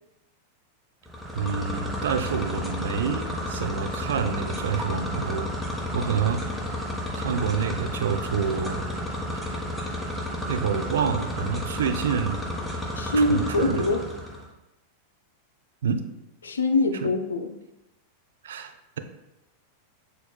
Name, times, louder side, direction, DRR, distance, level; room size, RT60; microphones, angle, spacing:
sound 1, 1.1-14.4, left 1 dB, 5° left, 0.6 m, -32 dB
voice 1, 1.3-5.5 5.9-6.4 7.1-8.8 9.3-9.4 10.5-12.4 13.1-13.9 15.8-16.0 18.4-19.0, right 6 dB, 70° right, 7 dB, 0.3 m, -28 dB
voice 2, 13.0-14.1 16.4-17.5, left 2 dB, 80° left, 8 dB, 0.3 m, -24 dB
6.0 x 2.2 x 2.2 m, 0.92 s
figure-of-eight pair, 95°, 0 cm